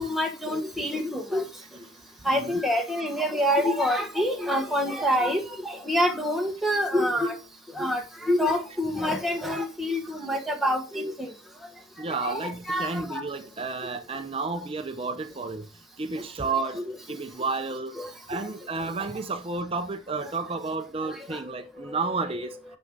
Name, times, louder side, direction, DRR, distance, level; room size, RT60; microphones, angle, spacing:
voice 1, 0.0-1.4 2.2-7.3 7.7-11.3 12.2-13.2 16.8-16.9 18.0-18.1 21.9-22.0, equal, ahead, 1.3 m, -26 dB
voice 2, 12.0-15.7 16.0-18.0 18.3-22.6, right 3 dB, 30° right, 0.6 m, -31 dB
9.0 x 5.2 x 3.6 m
head